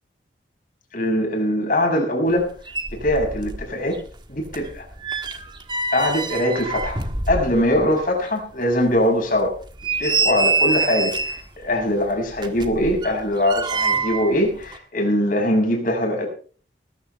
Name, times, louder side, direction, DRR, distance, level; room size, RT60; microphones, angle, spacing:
voice 1, 0.9-2.5 2.9-4.0 4.3-4.9 5.9-7.0 7.3-9.5 10.0-16.3, left 1 dB, 50° left, 2 dB, 6.2 m, -22 dB
sound 1, 2.4-2.5 2.7-3.7 3.9-7.9 8.2-8.3 8.9-9.0 9.5-11.5 12.3-14.3 14.6-14.8, right 3 dB, 25° right, 1.6 m, -25 dB
20.0 x 14.0 x 3.4 m, 0.42 s
head